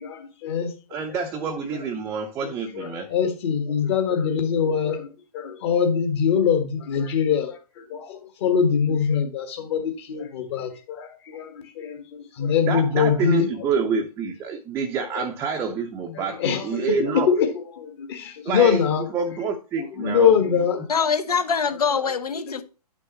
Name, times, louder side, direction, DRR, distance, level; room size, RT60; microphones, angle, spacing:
voice 1, 0.0-0.7 1.1-1.2 2.4-13.7 15.1-15.3 16.1-19.1 19.8-20.8 22.0-22.1 22.4-22.6, left 7 dB, 40° left, 1.5 m, -24 dB
voice 2, 0.9-3.1 12.7-17.3 18.4-18.9 19.1-20.3, right 5 dB, 15° right, 0.6 m, -27 dB
voice 3, 20.9-22.6, left 6 dB, 65° left, 1.1 m, -23 dB
9.2 x 6.2 x 3.0 m
figure-of-eight pair, 125°, 21 cm